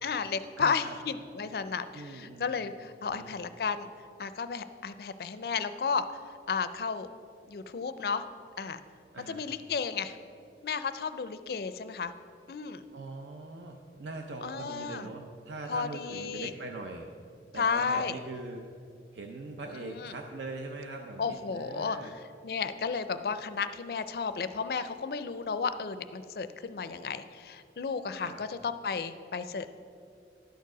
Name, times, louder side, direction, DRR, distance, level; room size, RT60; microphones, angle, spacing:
voice 1, 0.0-3.9 4.2-6.1 6.5-7.1 7.5-8.2 8.6-8.8 9.3-10.2 10.6-12.1 12.5-12.8 14.4-15.1 15.7-16.5 17.6-18.2 19.8-20.1 21.2-22.0 22.4-29.7, left 5 dB, 55° left, 12 dB, 0.4 m, -33 dB
voice 2, 0.6-0.9 1.9-2.5 3.1-3.3 9.1-9.4 12.9-17.1 17.5-18.6 19.1-22.1 28.2-28.4, right 2 dB, 80° right, 3 dB, 0.6 m, -41 dB
11.5 x 4.6 x 6.0 m, 2.4 s
head